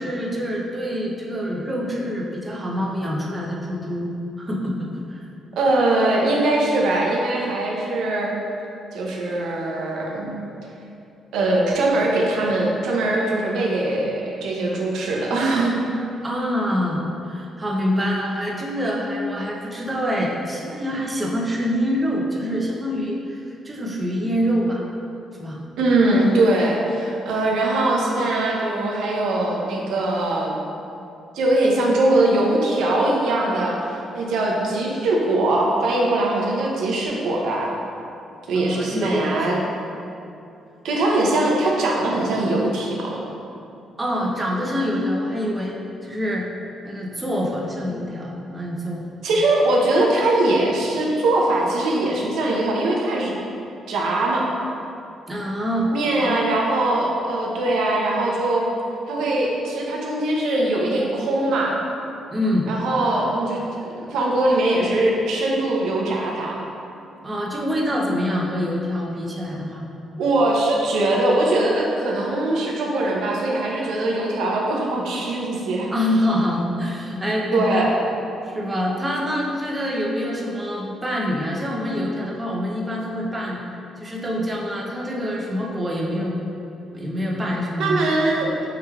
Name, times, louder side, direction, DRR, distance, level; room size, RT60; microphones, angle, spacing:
voice 1, 0.0-4.1 4.4-4.7 5.1-5.3 16.2-24.9 25.4-25.6 38.6-39.3 44.0-46.5 46.8-49.0 55.3-55.9 56.2-56.4 62.3-62.7 67.2-69.8 75.9-77.9 78.4-83.6 84.0-86.3 86.9-88.1, equal, 20° right, -3 dB, 0.6 m, -25 dB
voice 2, 5.6-8.3 8.9-10.4 11.3-15.8 25.8-30.6 31.3-37.7 38.5-39.6 40.8-43.2 49.2-53.3 53.9-54.5 55.9-58.7 59.1-61.8 62.7-66.6 70.2-75.9 77.5-78.0 87.8-88.5, right 2 dB, 80° right, -2 dB, 0.5 m, -21 dB
4.7 x 3.1 x 2.3 m, 2.7 s
cardioid pair, 90°, 0 cm